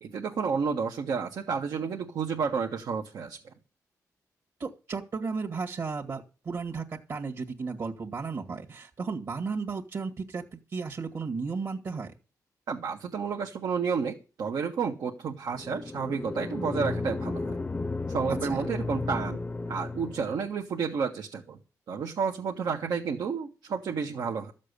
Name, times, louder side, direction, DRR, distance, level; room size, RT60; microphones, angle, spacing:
voice 1, 0.0-3.4 12.7-17.6 18.1-19.4 19.7-21.6 21.9-24.5, right 5 dB, 80° right, 0 dB, 1.7 m, -31 dB
voice 2, 4.6-12.1 18.4-18.6, right 4 dB, 55° right, 0 dB, 2.1 m, -34 dB
sound 1, 15.5-20.5, left 3 dB, 25° left, 0.7 m, -34 dB
13.5 x 7.5 x 8.5 m, 0.35 s
cardioid pair, 85°, 7 cm